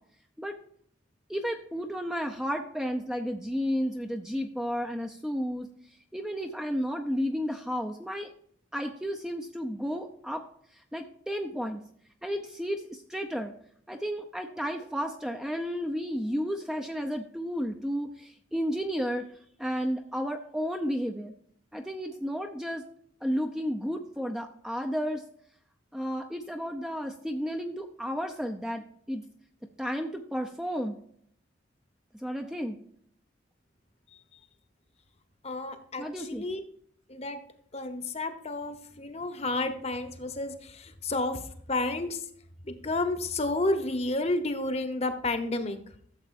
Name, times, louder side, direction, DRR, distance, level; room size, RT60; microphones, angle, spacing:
voice 1, 1.3-5.7 6.1-8.3 8.7-10.4 10.9-11.8 12.2-13.5 13.9-19.3 19.6-21.3 21.7-22.8 23.2-25.2 25.9-28.8 29.1-29.2 29.8-31.0 32.2-32.8 36.0-36.4, equal, 5° right, 3 dB, 0.6 m, -32 dB
voice 2, 35.4-36.6 37.1-37.4 37.7-41.4 41.7-42.2 42.6-45.8, left 2 dB, 35° left, 8 dB, 1.0 m, -31 dB
13.0 x 7.3 x 2.6 m, 0.63 s
head